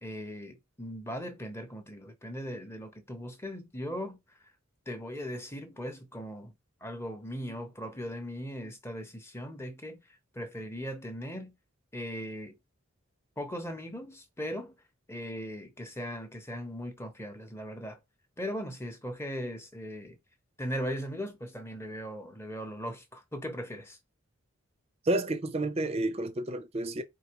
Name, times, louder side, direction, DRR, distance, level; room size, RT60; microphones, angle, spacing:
voice 1, 0.0-4.4 4.9-6.5 6.8-10.0 10.3-11.5 11.9-12.6 13.4-14.7 15.1-18.0 18.4-20.2 20.6-24.0, equal, 10° left, 0.7 m, -38 dB
voice 2, 25.1-27.0, right 1 dB, 30° right, 0.5 m, -30 dB
4.5 x 2.7 x 3.0 m
head